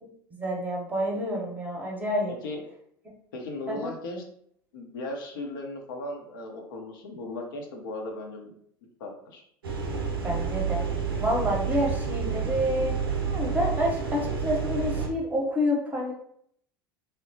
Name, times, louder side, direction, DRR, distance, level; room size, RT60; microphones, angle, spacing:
voice 1, 0.0-2.3 3.7-3.9 10.2-10.8 11.2-16.1, equal, 15° right, -1 dB, 0.8 m, -28 dB
voice 2, 2.3-2.6 3.3-4.2 4.7-8.5 9.0-9.4, left 2 dB, 60° left, 2 dB, 0.6 m, -37 dB
sound 1, 9.6-15.1, right 6 dB, 75° right, 0.5 m, -29 dB
3.0 x 2.1 x 2.7 m, 0.66 s
figure-of-eight pair, 75°, 12 cm